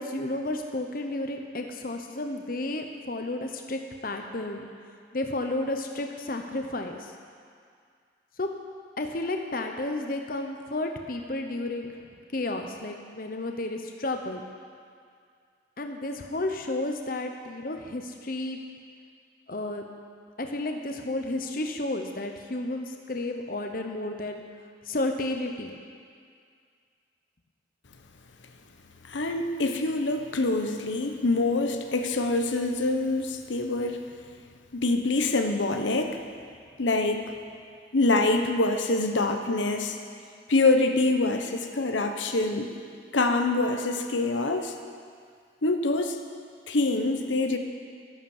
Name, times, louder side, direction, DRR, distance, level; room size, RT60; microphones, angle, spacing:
voice 1, 0.0-4.7 5.1-7.1 8.4-8.5 9.0-11.9 12.3-14.4 15.8-18.6 19.5-19.8 20.4-24.4 24.8-25.7, left 2 dB, 50° left, 4 dB, 0.9 m, -32 dB
voice 2, 29.1-34.0 34.7-36.2 36.8-37.2 37.9-40.0 40.5-42.7 43.1-44.7 45.6-46.2 46.7-47.6, left 2 dB, 85° left, 5 dB, 1.0 m, -25 dB
12.5 x 11.0 x 7.3 m, 2.2 s
head